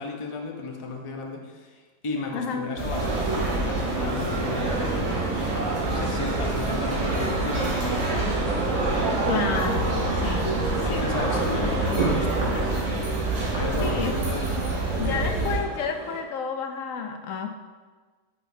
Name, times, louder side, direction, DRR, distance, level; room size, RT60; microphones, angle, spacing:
voice 1, 0.0-5.4 5.9-9.2 10.6-12.8 13.6-14.6, left 3 dB, 30° left, 1 dB, 0.7 m, -35 dB
voice 2, 2.3-2.7 9.3-11.1 13.8-14.2 15.0-17.5, left 6 dB, 75° left, 5 dB, 1.0 m, -31 dB
sound 1, 2.8-15.6, right 2 dB, 80° right, 2.2 m, -28 dB
sound 2, 2.9-16.2, right 2 dB, 60° right, 1.5 m, -29 dB
9.4 x 6.2 x 2.7 m, 1.4 s
omnidirectional pair, 1.4 m